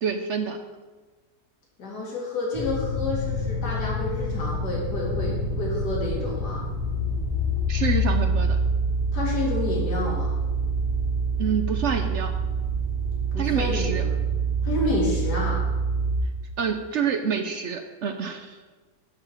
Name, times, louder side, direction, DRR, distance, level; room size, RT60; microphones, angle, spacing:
voice 1, 0.0-0.6 7.7-8.6 11.4-12.3 13.4-14.0 16.6-18.6, right 7 dB, 60° right, 6 dB, 0.8 m, -27 dB
voice 2, 1.8-6.6 9.1-10.3 13.3-14.1 14.6-15.6, left 2 dB, 80° left, -4 dB, 2.5 m, -29 dB
sound 1, 2.5-16.2, right 2 dB, 15° left, 1.4 m, -26 dB
11.0 x 4.1 x 7.2 m, 1.3 s
omnidirectional pair, 1.7 m